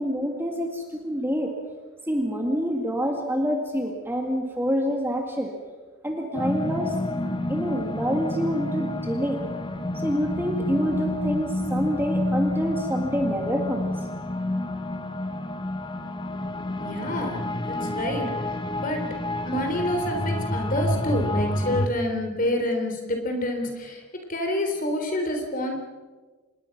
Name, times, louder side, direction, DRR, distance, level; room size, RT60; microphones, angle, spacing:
voice 1, 0.0-1.5 2.1-5.5 6.0-7.0 7.5-9.4 9.9-13.9, equal, 10° right, 2 dB, 2.0 m, -27 dB
sound 1, 6.3-21.9, left 1 dB, 20° left, 1.0 m, -29 dB
voice 2, 16.8-17.4 17.7-18.3 18.8-19.1 19.4-24.0 24.3-25.8, left 1 dB, 35° left, 4 dB, 3.7 m, -27 dB
26.0 x 21.0 x 6.0 m, 1.3 s
head